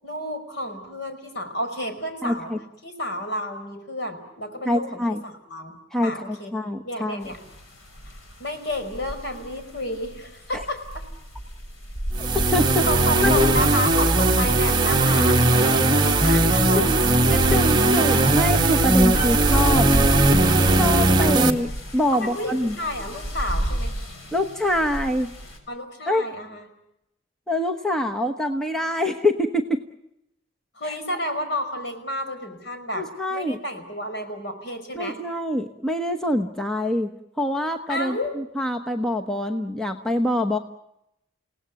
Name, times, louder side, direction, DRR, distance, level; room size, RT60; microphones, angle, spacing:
voice 1, 0.0-2.5 2.8-6.5 6.8-7.4 8.4-11.0 12.5-12.6 12.9-17.1 17.6-17.9 19.2-19.3 22.1-23.9 25.7-26.7 30.8-35.2 37.9-38.3, equal, 55° left, 6 dB, 5.2 m, -31 dB
voice 2, 2.2-2.6 4.6-5.2 5.9-7.3 10.5-10.6 12.2-12.9 13.2-13.7 16.7-17.0 17.3-19.9 20.7-22.8 24.3-25.3 26.1-26.2 27.5-29.8 30.8-30.9 32.9-33.6 34.9-37.1 37.4-40.6, left 1 dB, 5° left, 4 dB, 1.1 m, -25 dB
sound 1, 7.2-25.6, equal, 85° left, 5.7 m, -33 dB
sound 2, 12.1-21.5, right 2 dB, 20° right, 1.7 m, -19 dB
29.5 x 18.0 x 8.2 m, 0.84 s
head